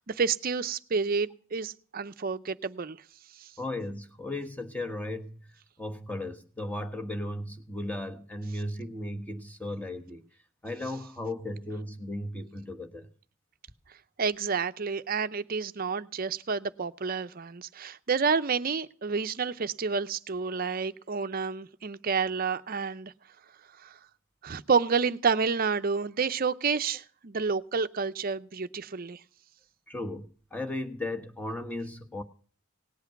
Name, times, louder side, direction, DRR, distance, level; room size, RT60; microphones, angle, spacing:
voice 1, 0.0-3.0 3.4-3.5 14.2-23.1 23.8-23.9 24.4-29.2, right 5 dB, 45° right, 0.6 m, -29 dB
voice 2, 3.6-5.4 5.8-10.2 10.6-13.1 29.9-32.2, left 1 dB, 5° left, 1.2 m, -36 dB
18.5 x 8.3 x 5.8 m
head